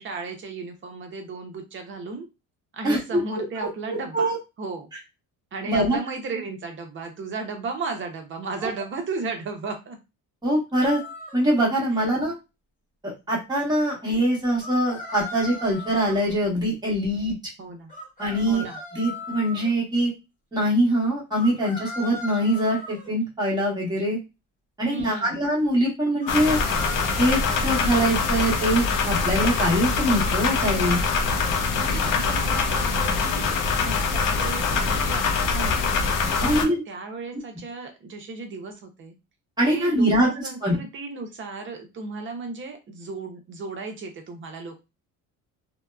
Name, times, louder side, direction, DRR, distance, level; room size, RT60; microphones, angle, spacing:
voice 1, 0.0-2.3 2.7-4.3 4.6-4.9 5.5-10.0 12.0-12.1 17.6-17.9 18.5-18.8 24.8-25.5 31.7-35.8 36.3-39.2 39.7-44.8, right 4 dB, 35° right, 4 dB, 0.6 m, -35 dB
voice 2, 2.8-4.4 5.6-6.0 8.6-8.7 10.4-11.0 11.3-12.3 13.0-17.3 18.2-18.6 18.9-20.1 20.5-24.2 24.8-26.6 27.2-31.0 36.4-36.8 39.6-40.3 40.6-40.7, right 1 dB, 10° right, -4 dB, 1.1 m, -23 dB
sound 1, 10.8-11.4 14.6-16.3 17.9-19.7 21.3-23.1 26.2-27.9, left 2 dB, 20° left, 1.0 m, -37 dB
sound 2, 26.3-36.6, left 4 dB, 60° left, 0.6 m, -24 dB
2.7 x 2.1 x 2.2 m, 0.26 s
cardioid pair, 145°, 36 cm